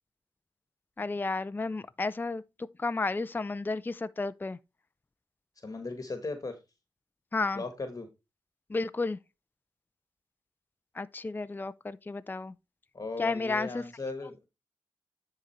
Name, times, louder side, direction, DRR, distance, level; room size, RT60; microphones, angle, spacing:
voice 1, 1.0-2.4 2.8-4.6 7.3-7.6 8.7-9.2 11.0-12.5 13.2-13.8, left 3 dB, 20° left, 0.4 m, -32 dB
voice 2, 5.6-6.6 7.5-8.1 12.9-14.4, left 3 dB, 40° left, 1.3 m, -37 dB
10.0 x 3.9 x 4.4 m
cardioid pair, 75°, 9 cm